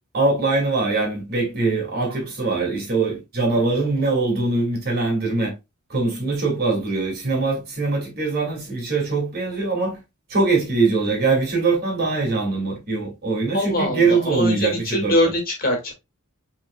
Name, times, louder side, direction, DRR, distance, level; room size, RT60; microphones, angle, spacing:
voice 1, 0.1-5.5 5.9-10.0 10.3-15.1, right 3 dB, 45° right, 2.3 m, -22 dB
voice 2, 13.5-15.9, left 1 dB, 45° left, 1.8 m, -23 dB
6.2 x 3.6 x 2.3 m
head